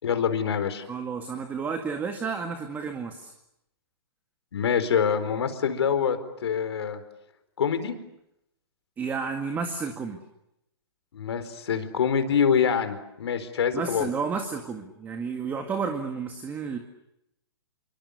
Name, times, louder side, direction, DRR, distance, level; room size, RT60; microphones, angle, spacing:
voice 1, 0.0-0.8 4.5-7.0 7.6-7.9 11.1-14.1, left 7 dB, 75° left, 10 dB, 4.4 m, -25 dB
voice 2, 0.9-3.3 9.0-10.2 13.7-16.8, right 5 dB, 15° right, 6 dB, 2.0 m, -31 dB
28.0 x 24.0 x 8.4 m, 0.84 s
hypercardioid pair, 145°, 14 cm